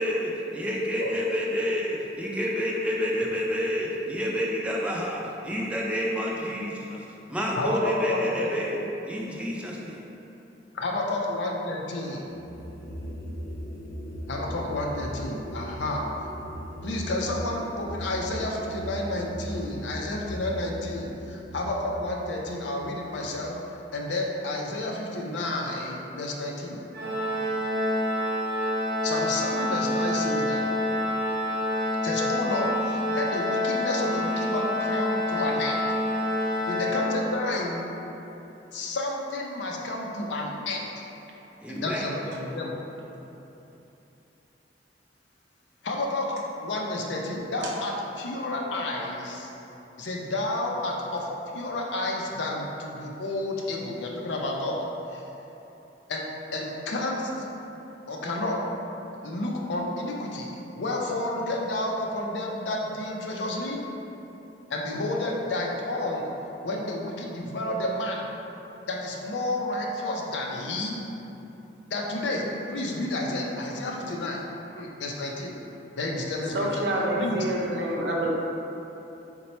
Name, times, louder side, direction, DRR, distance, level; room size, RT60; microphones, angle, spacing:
voice 1, 0.0-7.0 7.3-8.8 9.0-10.0 41.6-42.0, equal, 5° right, -3 dB, 0.4 m, -29 dB
voice 2, 7.6-8.5 10.7-12.3 14.3-16.1 16.8-23.6 23.9-26.8 29.0-30.6 32.0-35.8 36.7-37.9 38.7-41.0 41.7-42.8 45.8-49.5 50.0-51.3 51.5-55.2 56.1-56.3 56.5-57.5 58.1-58.6 59.2-63.8 64.7-66.3 66.6-68.2 68.9-71.0 71.9-72.4 72.7-74.4 74.8-75.6 76.0-76.8 77.2-77.4, left 2 dB, 90° left, -1 dB, 0.5 m, -30 dB
sound 1, 12.3-23.6, equal, 55° left, 0.7 m, -38 dB
Organ, 26.9-37.7, left 1 dB, 65° right, 1.0 m, -27 dB
voice 3, 76.5-78.3, right 1 dB, 85° right, -3 dB, 0.6 m, -27 dB
4.0 x 2.2 x 4.2 m, 3.0 s
head